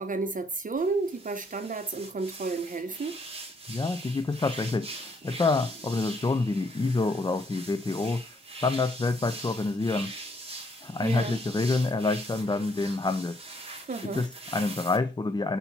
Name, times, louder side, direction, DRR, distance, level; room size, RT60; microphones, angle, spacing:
voice 1, 0.0-3.1 11.0-11.4 13.9-14.2, right 3 dB, 45° right, 0.9 m, -31 dB
sound 1, 0.8-15.0, right 2 dB, 30° right, 1.8 m, -42 dB
voice 2, 3.7-10.1 10.8-13.4 14.0-15.6, left 3 dB, 25° left, 0.4 m, -27 dB
6.9 x 4.3 x 4.1 m
wide cardioid pair, 110°, 18 cm